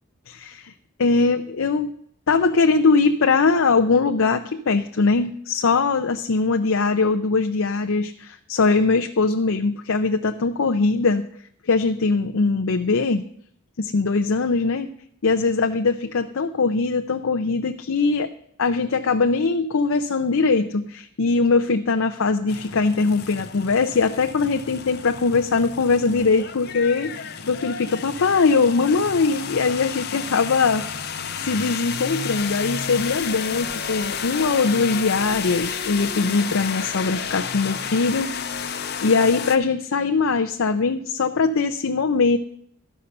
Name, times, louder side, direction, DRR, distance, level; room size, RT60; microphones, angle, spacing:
voice 1, 0.3-0.7 1.0-1.9 2.3-11.2 11.7-13.2 13.8-14.9 15.2-18.3 18.6-31.1 31.4-42.4, left 4 dB, 70° left, 6 dB, 0.6 m, -21 dB
sound 1, 22.5-39.6, left 7 dB, 50° left, 0.8 m, -31 dB
13.0 x 5.6 x 6.5 m, 0.67 s
head